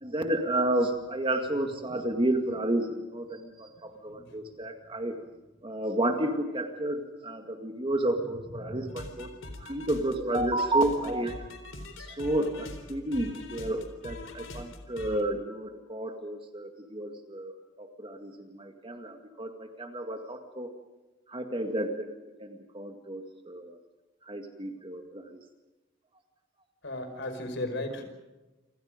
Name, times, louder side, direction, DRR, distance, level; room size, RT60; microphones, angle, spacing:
voice 1, 0.0-5.1 5.6-9.3 9.6-11.4 12.0-17.5 17.8-20.7 21.3-22.1 22.4-23.8 24.3-25.4, right 1 dB, 25° right, 5 dB, 2.0 m, -31 dB
voice 2, 8.6-8.9 26.8-28.0, left 1 dB, 65° left, 8 dB, 5.2 m, -35 dB
sound 1, 8.9-15.2, left 2 dB, 80° left, 4.0 m, -43 dB
29.0 x 26.5 x 5.2 m, 1.1 s
head